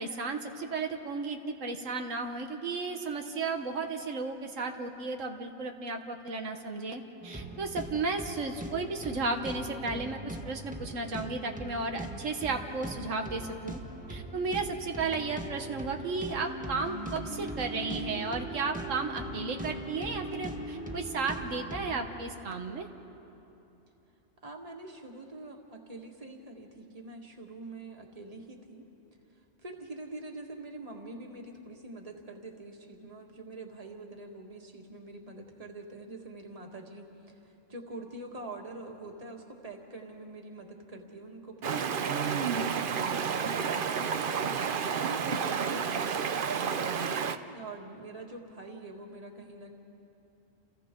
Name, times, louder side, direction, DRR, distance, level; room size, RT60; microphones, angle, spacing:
voice 1, 0.0-13.8 14.1-22.9, right 3 dB, 85° right, 4 dB, 1.6 m, -34 dB
sound 1, 7.2-22.1, right 1 dB, 5° right, 1.4 m, -42 dB
sound 2, 16.4-21.6, right 1 dB, 80° left, 5.5 m, -42 dB
voice 2, 24.4-28.9 29.6-44.1 45.0-49.7, right 2 dB, 30° right, 1 dB, 1.9 m, -45 dB
Stream, 41.6-47.4, right 6 dB, 50° right, 0.8 m, -30 dB
30.0 x 29.5 x 3.8 m, 2.9 s
omnidirectional pair, 1.3 m